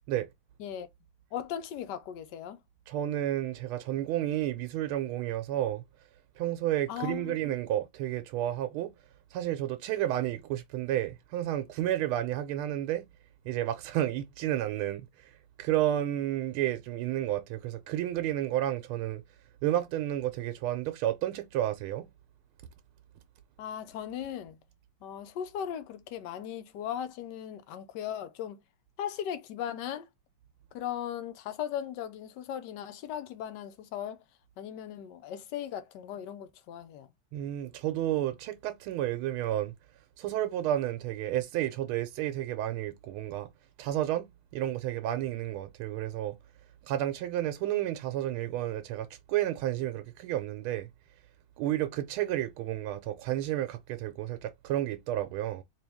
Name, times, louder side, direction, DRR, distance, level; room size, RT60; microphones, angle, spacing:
voice 1, 1.3-2.6 6.9-7.4 23.6-24.6 25.0-28.6 29.0-30.1 30.7-34.2 34.6-37.1, left 9 dB, 70° left, 1.1 m, -37 dB
voice 2, 2.9-5.8 6.4-8.9 9.3-13.0 13.5-15.1 15.6-19.2 19.6-22.1 37.3-39.7 40.2-43.5 43.8-44.3 44.5-46.4 46.9-50.9 51.6-55.6, right 13 dB, 85° right, 1.4 m, -31 dB
3.7 x 2.8 x 3.4 m
omnidirectional pair, 2.3 m